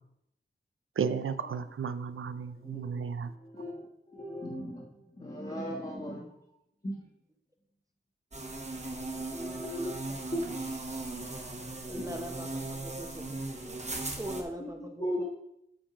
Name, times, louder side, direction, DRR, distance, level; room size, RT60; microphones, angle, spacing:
voice 1, 1.0-3.3, right 6 dB, 85° right, 12 dB, 0.5 m, -33 dB
voice 2, 2.6-6.2 6.8-7.0 9.1-9.3 9.6-9.9 10.3-10.4 12.0-12.2 14.6-14.7 15.0-15.3, equal, 30° left, -4 dB, 1.4 m, -37 dB
sound 1, 8.3-14.4, right 2 dB, 35° right, 1.1 m, -38 dB
voice 3, 9.3-9.7 10.1-10.2 11.9-13.4 14.2-15.3, equal, 15° right, 3 dB, 0.8 m, -41 dB
8.8 x 3.7 x 4.9 m, 0.77 s
wide cardioid pair, 55°, 21 cm